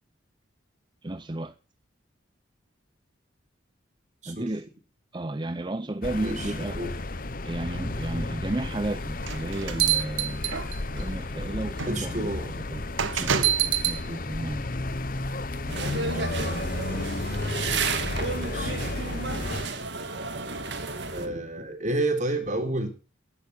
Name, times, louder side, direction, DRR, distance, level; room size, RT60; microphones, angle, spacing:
voice 1, 1.0-1.5 4.3-4.7 5.1-7.0 7.4-10.5 10.9-12.9 13.2-13.4 13.9-14.7 15.6-16.0, right 1 dB, 25° right, 0.6 m, -33 dB
sound 1, 6.0-19.7, left 2 dB, 45° left, 1.0 m, -33 dB
voice 2, 6.2-6.9 11.9-12.5 13.0-13.6 16.1-16.2 18.4-19.3 21.1-22.9, right 2 dB, 40° right, 3.8 m, -31 dB
sound 2, 9.2-11.0 11.8-11.9 13.0-14.0, right 9 dB, 80° right, 1.2 m, -25 dB
sound 3, 15.7-21.3, right 4 dB, 60° right, 2.5 m, -32 dB
12.5 x 11.0 x 6.8 m
head